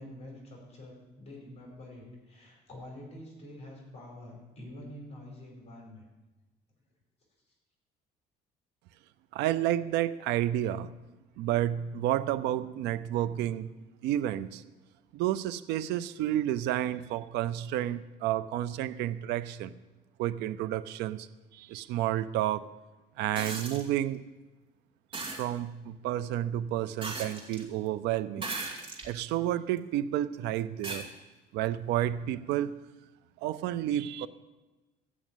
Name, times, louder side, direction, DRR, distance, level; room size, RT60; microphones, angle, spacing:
voice 1, 0.0-6.0, left 1 dB, 40° left, -1 dB, 4.9 m, -47 dB
voice 2, 9.3-10.9 11.4-13.7 14.0-14.7 15.1-19.8 20.2-21.3 21.5-22.7 23.2-24.2 25.3-28.5 29.0-31.1 31.5-32.8 33.4-34.3, right 12 dB, 90° right, 13 dB, 0.6 m, -30 dB
sound 1, 23.3-23.8 25.1-25.4 27.0-27.6 28.4-29.1 29.8-29.9 30.8-31.0 32.5-32.6, right 3 dB, 30° right, 2.4 m, -37 dB
14.0 x 6.1 x 9.1 m, 1.1 s
cardioid pair, 110°, 17 cm